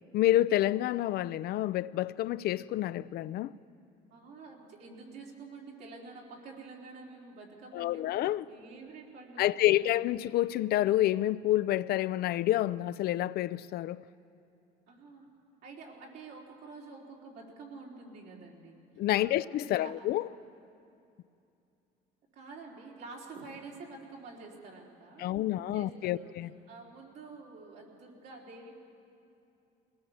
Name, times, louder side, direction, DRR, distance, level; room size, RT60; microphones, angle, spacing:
voice 1, 0.1-3.5 7.7-8.4 9.4-14.0 19.0-20.3 25.2-26.5, left 14 dB, 70° left, 0.5 m, -28 dB
voice 2, 4.1-8.2 8.5-9.9 14.9-15.3 15.6-18.9 19.2-20.1 22.3-28.8, right 3 dB, 80° right, 4.1 m, -48 dB
21.5 x 18.0 x 7.2 m
cardioid pair, 110°, 17 cm